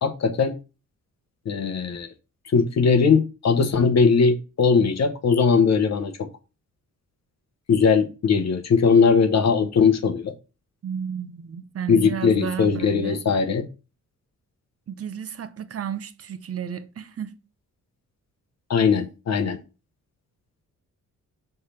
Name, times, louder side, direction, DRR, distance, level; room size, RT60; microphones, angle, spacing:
voice 1, 0.0-0.5 1.5-2.1 2.5-6.3 7.7-10.3 11.9-13.7 18.7-19.6, left 5 dB, 55° left, 1.0 m, -20 dB
voice 2, 10.8-13.2 14.9-17.3, right 8 dB, 45° right, 0.8 m, -32 dB
6.6 x 3.4 x 5.7 m
wide cardioid pair, 125°, 32 cm